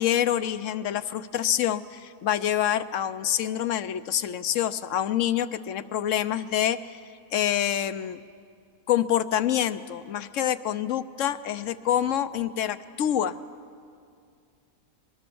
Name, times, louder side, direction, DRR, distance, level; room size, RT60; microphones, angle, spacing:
voice 1, 0.0-7.0 7.3-8.2 8.9-13.4, left 10 dB, 65° left, 14 dB, 1.0 m, -26 dB
24.0 x 23.0 x 7.0 m, 2.3 s
omnidirectional pair, 1.5 m